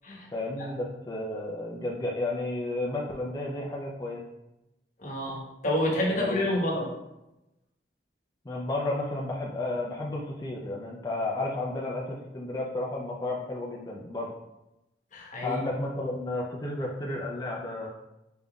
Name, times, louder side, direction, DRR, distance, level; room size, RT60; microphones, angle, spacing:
voice 1, 0.3-4.2 5.9-6.6 8.5-14.3 15.4-17.9, left 2 dB, 20° left, -3 dB, 0.5 m, -32 dB
voice 2, 5.0-6.9 15.1-15.6, left 1 dB, 45° left, -3 dB, 1.1 m, -29 dB
5.2 x 3.6 x 2.3 m, 0.93 s
head